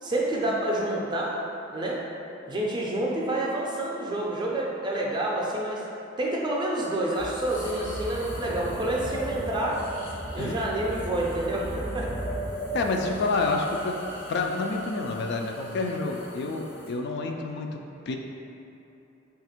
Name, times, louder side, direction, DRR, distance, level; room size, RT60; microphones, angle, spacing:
voice 1, 0.0-1.3 1.7-2.0 2.5-5.8 6.2-9.8 10.3-12.2, right 1 dB, 20° right, -3 dB, 0.5 m, -28 dB
sound 1, 7.1-16.9, equal, 80° left, 0.9 m, -37 dB
voice 2, 12.7-14.0 14.3-18.2, left 3 dB, 55° left, 2 dB, 0.3 m, -28 dB
3.4 x 2.4 x 4.3 m, 3.0 s
head